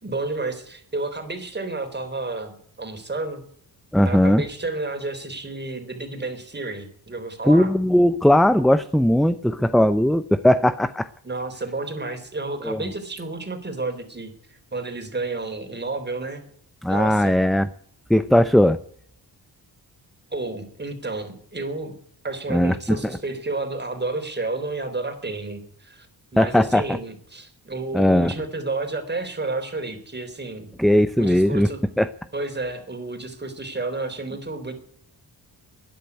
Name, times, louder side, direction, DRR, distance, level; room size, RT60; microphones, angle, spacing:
voice 1, 0.0-3.4 4.1-7.7 11.2-16.4 16.9-17.4 20.3-21.9 22.2-26.1 26.3-30.7 31.2-31.8 32.3-34.7, right 3 dB, 25° right, 6 dB, 3.7 m, -31 dB
voice 2, 3.9-4.4 7.4-11.1 12.6-12.8 16.8-17.7 18.1-18.8 22.5-23.0 26.4-27.0 27.9-28.3 30.8-31.7 32.0-32.1, left 1 dB, ahead, 13 dB, 0.6 m, -18 dB
12.5 x 10.5 x 9.6 m, 0.62 s
cardioid pair, 85°, 41 cm